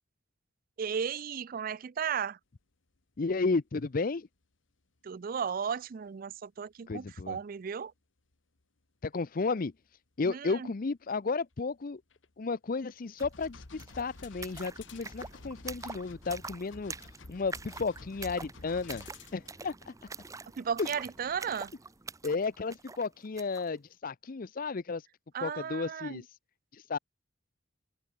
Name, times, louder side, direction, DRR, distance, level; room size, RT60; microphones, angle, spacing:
voice 1, 0.8-2.4 5.0-7.9 10.3-10.7 20.6-21.7 25.3-26.2, right 7 dB, 50° right, 0.4 m, -35 dB
sound 1, 3.2-3.3 11.5-11.6 12.1-12.3 13.2-19.9 20.7-20.8, left 2 dB, 90° left, 1.5 m, -50 dB
voice 2, 3.2-4.3 6.9-7.4 9.0-9.7 10.2-12.0 12.4-19.0 19.3-19.9 20.8-20.9 22.2-25.1 25.4-26.4 26.7-27.0, left 4 dB, 50° left, 0.6 m, -33 dB
sound 2, 13.2-13.3 13.5-23.7, right 4 dB, 15° right, 0.7 m, -46 dB
sound 3, 14.2-15.7 18.8-19.5, left 12 dB, 70° left, 3.3 m, -55 dB
open air
head